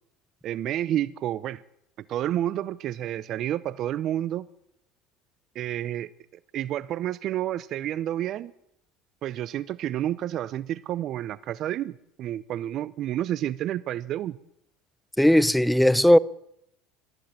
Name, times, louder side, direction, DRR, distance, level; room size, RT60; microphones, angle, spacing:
voice 1, 0.4-1.6 2.1-4.5 5.5-6.1 6.5-8.5 9.2-14.4, right 12 dB, 50° right, 0.7 m, -30 dB
voice 2, 15.2-16.2, equal, 5° left, 0.8 m, -17 dB
22.0 x 14.0 x 8.9 m
supercardioid pair, 95°, 0 cm